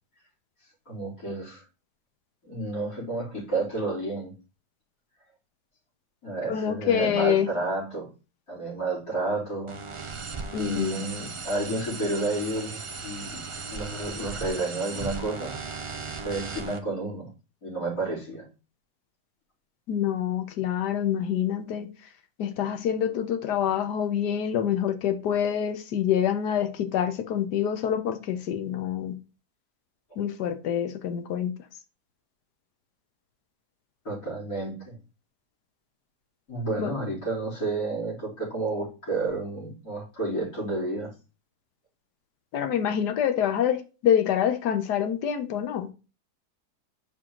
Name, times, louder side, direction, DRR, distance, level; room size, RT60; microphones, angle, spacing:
voice 1, 0.9-1.6 2.4-4.3 6.2-8.1 8.5-9.8 10.6-13.4 13.7-15.5 16.2-17.3 17.6-18.5 34.0-35.0 36.5-41.1, right 2 dB, 65° left, 4.6 m, -31 dB
voice 2, 6.5-7.5 10.5-11.0 19.9-21.9 22.4-29.1 30.2-31.5 36.8-36.9 42.5-45.9, left 9 dB, 85° left, 1.4 m, -26 dB
sound 1, 9.7-16.8, right 4 dB, 55° right, 0.3 m, -37 dB
6.0 x 4.7 x 3.8 m
omnidirectional pair, 1.7 m